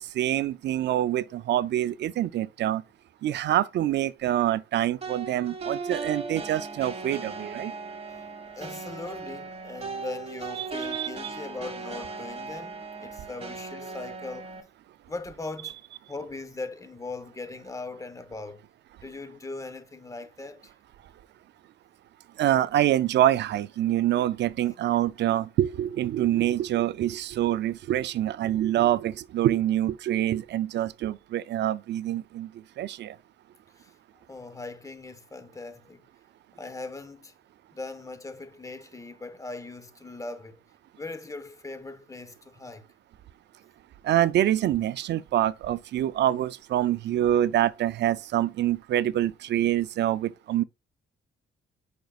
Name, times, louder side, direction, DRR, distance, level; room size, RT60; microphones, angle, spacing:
voice 1, 0.0-2.8 3.2-7.7 10.6-11.1 22.4-33.2 44.0-50.6, right 12 dB, 60° right, 0.4 m, -26 dB
sound 1, 5.0-14.6, right 4 dB, 30° right, 1.6 m, -37 dB
voice 2, 8.6-14.5 15.1-15.8 16.1-18.6 19.0-20.7 33.8-33.9 34.3-36.0 36.5-37.3 37.7-40.6 40.9-42.8, left 3 dB, 15° left, 0.9 m, -40 dB
9.1 x 5.1 x 2.4 m
cardioid pair, 90°, 20 cm